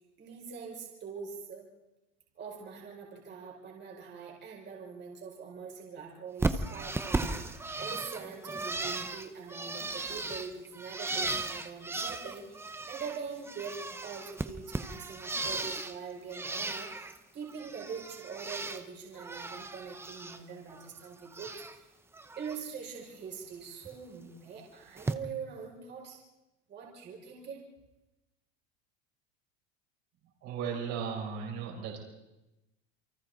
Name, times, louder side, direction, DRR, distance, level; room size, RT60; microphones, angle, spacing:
voice 1, 0.2-1.7 2.3-13.7 14.0-16.9 17.3-21.9 22.4-26.2 26.7-27.6, right 6 dB, 30° right, -1 dB, 4.7 m, -43 dB
Bird, 6.4-13.2 13.4-16.0 16.3-17.1 17.5-18.8 19.1-20.4 20.7-21.8 22.1-22.6 23.8-24.0 25.0-25.1, right 3 dB, 5° right, 0.8 m, -36 dB
voice 2, 30.4-32.0, right 6 dB, 50° right, 1 dB, 5.3 m, -36 dB
28.5 x 24.5 x 4.0 m, 0.98 s
supercardioid pair, 150°, 33 cm